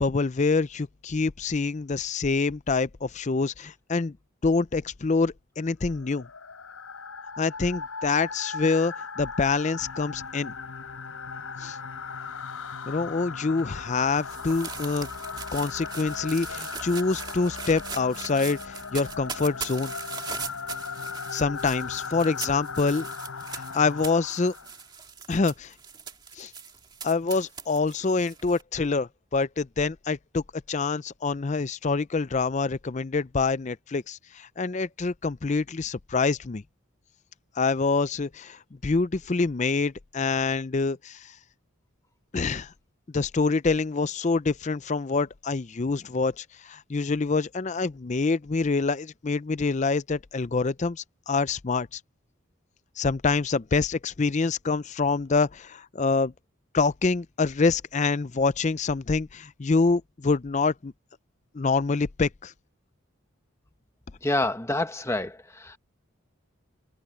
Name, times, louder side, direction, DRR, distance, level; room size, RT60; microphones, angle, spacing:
voice 1, 0.0-4.2 4.4-6.3 7.4-10.5 11.6-11.8 12.9-15.1 15.5-19.9 21.3-23.1 23.5-24.5 25.3-25.7 26.4-26.5 27.0-36.6 37.6-41.3 42.3-42.7 43.1-52.0 53.0-56.3 56.7-60.9 61.5-62.5, left 4 dB, 35° left, 0.5 m, -26 dB
sound 1, 5.9-24.8, left 5 dB, 80° left, 4.5 m, -38 dB
sound 2, 9.7-24.1, left 3 dB, 55° left, 0.9 m, -46 dB
sound 3, 13.6-28.6, right 5 dB, 20° right, 2.3 m, -40 dB
voice 2, 64.2-65.8, left 1 dB, 15° left, 1.1 m, -28 dB
head